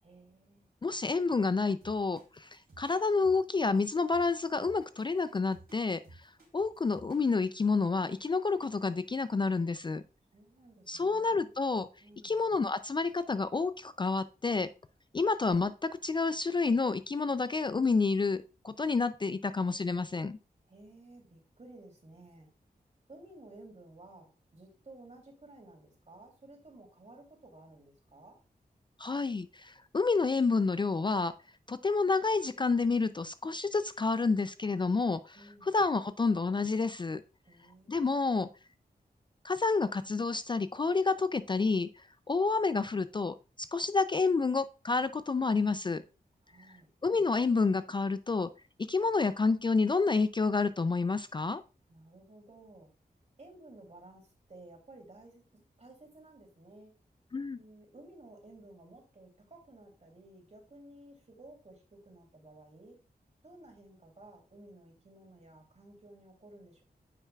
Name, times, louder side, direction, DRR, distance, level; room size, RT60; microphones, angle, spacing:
voice 1, 0.0-0.7 10.3-11.5 12.0-12.4 20.6-22.5 23.1-28.4 35.3-35.7 37.4-38.0 46.4-46.9 51.9-52.9 53.4-56.9 57.6-63.0 63.4-66.8, right 2 dB, 45° right, 2 dB, 2.7 m, -54 dB
voice 2, 0.8-6.0 6.5-10.0 10.9-11.9 12.2-14.7 15.1-20.4 29.0-31.3 31.7-35.4 35.6-37.2 37.9-38.5 39.4-41.9 42.3-46.0 47.0-48.5 48.9-51.6 57.3-57.6, left 4 dB, 30° left, 13 dB, 0.3 m, -29 dB
sound 1, 1.8-7.4, right 2 dB, 65° right, 3.3 m, -56 dB
9.2 x 5.6 x 2.3 m, 0.33 s
cardioid pair, 65°, 16 cm